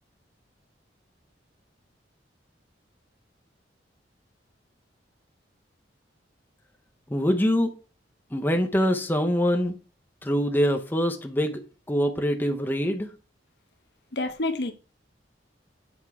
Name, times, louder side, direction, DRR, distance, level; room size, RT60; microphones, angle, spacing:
voice 1, 7.1-7.7 8.3-9.7 10.2-11.6 11.9-13.1, equal, 10° left, 0.6 m, -24 dB
voice 2, 14.1-14.7, left 2 dB, 60° left, 0.8 m, -28 dB
7.9 x 3.5 x 4.7 m
head